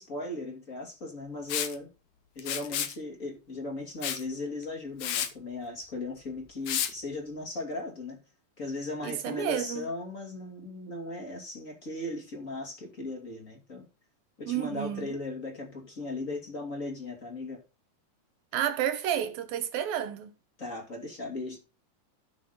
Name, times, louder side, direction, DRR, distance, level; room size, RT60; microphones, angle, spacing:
voice 1, 0.0-1.9 2.3-8.2 8.6-13.9 14.4-17.6 20.6-21.6, left 2 dB, 25° left, 2.2 m, -37 dB
Liquid, 1.5-1.7 2.4-3.0 4.0-4.2 4.6-4.7 5.0-5.3 6.7-6.9, left 10 dB, 75° left, 1.6 m, -31 dB
voice 2, 9.0-9.9 14.5-15.2 18.5-20.3, right 10 dB, 70° right, 2.7 m, -31 dB
13.5 x 6.4 x 3.9 m
omnidirectional pair, 4.6 m